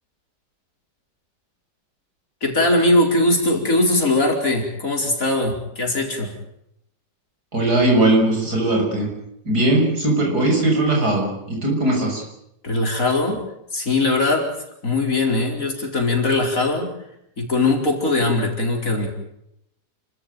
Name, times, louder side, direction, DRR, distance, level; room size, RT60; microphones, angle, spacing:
voice 1, 2.4-6.3 12.6-13.4 13.7-14.5 14.8-17.0 17.4-19.1, left 2 dB, 55° left, 2 dB, 5.0 m, -20 dB
voice 2, 7.5-9.1 9.5-12.2, right 2 dB, 70° right, 0 dB, 7.1 m, -19 dB
29.5 x 14.0 x 9.3 m, 0.78 s
omnidirectional pair, 1.7 m